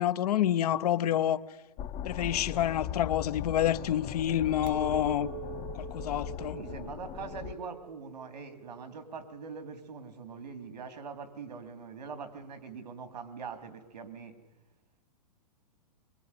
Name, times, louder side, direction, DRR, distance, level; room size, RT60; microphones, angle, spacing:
voice 1, 0.0-1.4 2.0-5.3 5.7-6.6, left 11 dB, 65° left, 1.0 m, -28 dB
sound 1, 1.8-7.5, left 11 dB, 30° left, 0.8 m, -39 dB
Chink clink, 4.6-10.0, right 15 dB, 50° right, 1.2 m, -45 dB
voice 2, 6.5-14.3, right 5 dB, 80° right, 3.4 m, -43 dB
23.0 x 22.5 x 9.9 m
hypercardioid pair, 130°, 21 cm